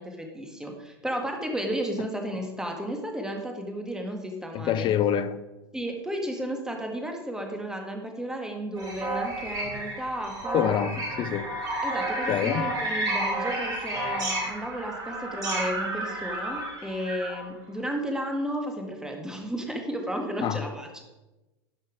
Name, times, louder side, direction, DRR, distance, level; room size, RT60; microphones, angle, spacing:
voice 1, 0.0-4.9 5.7-10.9 11.8-21.0, equal, 5° right, 1.8 m, -33 dB
voice 2, 4.5-5.4 10.5-11.5 12.3-12.7 20.4-20.6, left 10 dB, 40° left, 0.6 m, -26 dB
sound 1, 8.8-17.4, right 1 dB, 30° right, 3.5 m, -31 dB
11.5 x 5.7 x 4.9 m
hypercardioid pair, 100°, 13 cm